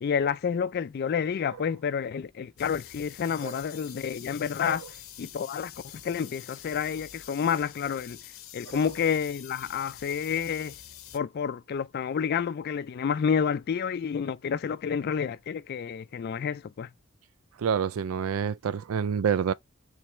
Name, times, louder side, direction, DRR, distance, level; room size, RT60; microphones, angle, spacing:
voice 1, 0.0-4.8 5.2-8.2 8.5-10.7 11.1-16.9, left 7 dB, 50° left, 0.3 m, -29 dB
sound 1, 2.6-11.2, left 11 dB, 75° left, 0.7 m, -46 dB
voice 2, 17.6-19.5, right 7 dB, 85° right, 0.4 m, -27 dB
4.5 x 3.3 x 3.2 m
head